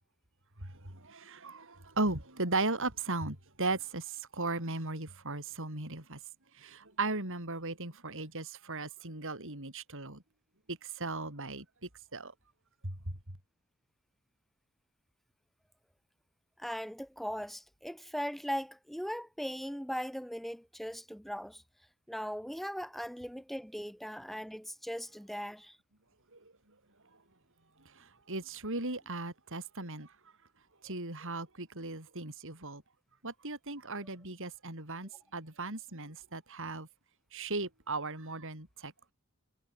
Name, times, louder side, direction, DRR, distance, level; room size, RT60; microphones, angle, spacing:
voice 1, 0.6-6.2 6.6-10.2 10.7-11.7 12.1-12.3 12.8-13.0 26.3-26.4 28.3-30.1 30.8-32.8 33.2-36.9 37.3-39.1, right 3 dB, 65° right, 7.3 m, -37 dB
voice 2, 16.6-21.6 22.1-25.8, equal, ahead, 2.6 m, -39 dB
head